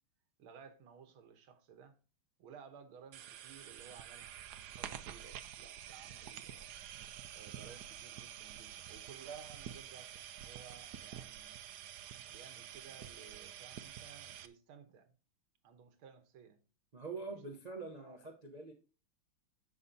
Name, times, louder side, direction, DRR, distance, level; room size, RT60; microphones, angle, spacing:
voice 1, 0.4-2.0 2.4-6.7 7.3-11.6 12.3-15.1 15.6-16.6 18.0-18.2, right 7 dB, 85° right, 1.9 m, -56 dB
sound 1, 3.1-14.5, right 10 dB, 70° right, 1.0 m, -48 dB
voice 2, 16.9-18.7, right 4 dB, 40° right, 0.6 m, -44 dB
14.0 x 5.4 x 2.7 m
omnidirectional pair, 2.3 m